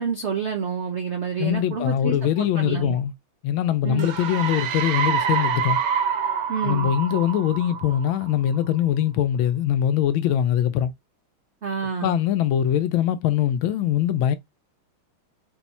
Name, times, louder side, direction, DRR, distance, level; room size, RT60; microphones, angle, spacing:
voice 1, 0.0-3.0 3.8-4.1 6.5-6.9 11.6-12.3, right 6 dB, 80° right, 0.6 m, -28 dB
voice 2, 1.4-3.1 3.4-5.8 6.6-10.9 12.0-14.4, left 10 dB, 75° left, 1.3 m, -22 dB
sound 1, 4.0-8.6, right 7 dB, 65° right, 1.2 m, -26 dB
4.2 x 2.3 x 4.1 m
omnidirectional pair, 2.3 m